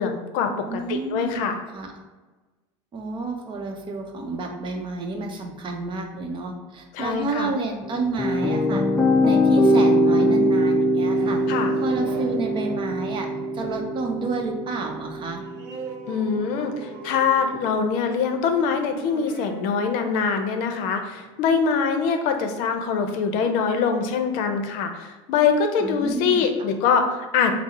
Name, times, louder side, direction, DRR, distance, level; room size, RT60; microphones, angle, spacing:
voice 1, 0.0-1.6 6.9-7.5 11.5-11.7 16.1-27.5, left 6 dB, 65° left, 6 dB, 0.6 m, -23 dB
voice 2, 0.7-1.4 1.7-1.9 2.9-8.8 9.2-11.4 11.8-13.3 13.5-15.4 25.8-26.4, right 3 dB, 35° right, 2 dB, 0.7 m, -30 dB
sound 1, 7.8-16.9, equal, 5° left, 0.6 m, -22 dB
sound 2, 10.8-22.1, right 3 dB, 75° right, 0.7 m, -43 dB
3.6 x 2.0 x 4.1 m, 1.2 s
supercardioid pair, 100°, 14 cm